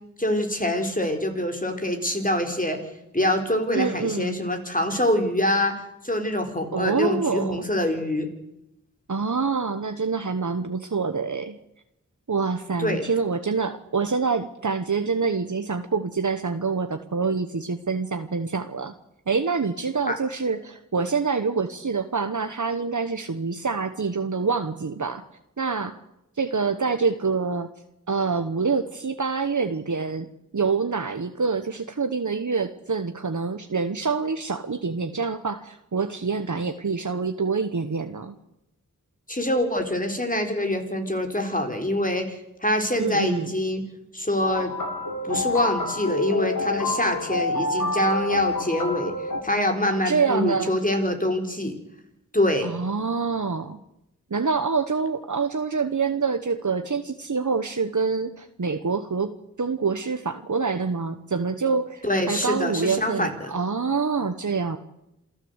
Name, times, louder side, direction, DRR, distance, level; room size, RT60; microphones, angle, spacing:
voice 1, 0.2-2.8 3.1-5.7 6.0-8.3 12.8-13.1 20.1-20.2 39.3-43.8 44.1-44.7 45.2-51.7 52.3-52.7 62.0-63.5, left 1 dB, 25° left, 4 dB, 4.2 m, -25 dB
voice 2, 3.7-4.4 6.7-7.7 9.1-11.6 12.3-18.9 19.3-25.2 25.6-26.0 26.4-27.7 28.1-30.3 30.5-38.4 43.0-43.5 49.9-50.7 52.6-53.8 54.3-64.8, right 5 dB, 65° right, 8 dB, 1.2 m, -26 dB
sound 1, 44.4-49.4, left 2 dB, 75° left, 3.0 m, -28 dB
27.5 x 14.5 x 8.1 m, 0.85 s
wide cardioid pair, 60°, 33 cm